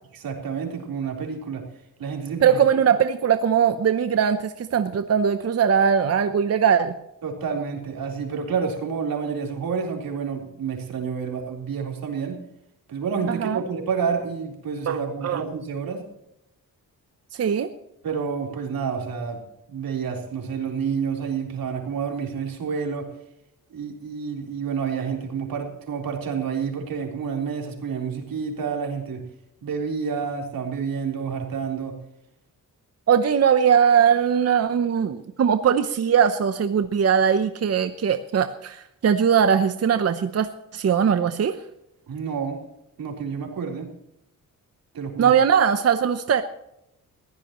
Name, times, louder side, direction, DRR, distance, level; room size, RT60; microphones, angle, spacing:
voice 1, 0.1-1.6 2.0-2.6 7.2-12.4 12.9-16.0 18.0-19.4 19.7-23.1 23.7-29.2 29.6-32.0 42.1-42.6 43.0-43.9 44.9-45.3, right 6 dB, 85° right, 1 dB, 3.9 m, -29 dB
voice 2, 2.4-6.9 13.3-13.6 14.9-15.4 17.3-17.7 33.1-41.6 45.2-46.4, right 7 dB, 45° right, 9 dB, 0.8 m, -20 dB
21.0 x 15.5 x 3.1 m, 0.82 s
wide cardioid pair, 180°, 34 cm